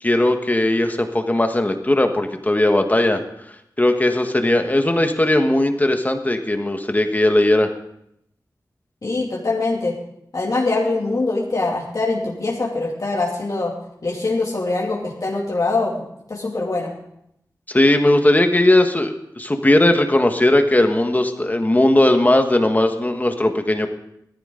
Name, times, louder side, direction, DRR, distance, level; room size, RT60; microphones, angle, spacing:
voice 1, 0.0-3.2 3.8-7.7 17.7-23.9, left 1 dB, 25° left, 6 dB, 1.4 m, -18 dB
voice 2, 9.0-9.9 10.3-13.7 14.0-16.9, left 3 dB, 55° left, -4 dB, 2.6 m, -23 dB
17.0 x 14.0 x 3.9 m, 0.76 s
wide cardioid pair, 75°, 7 cm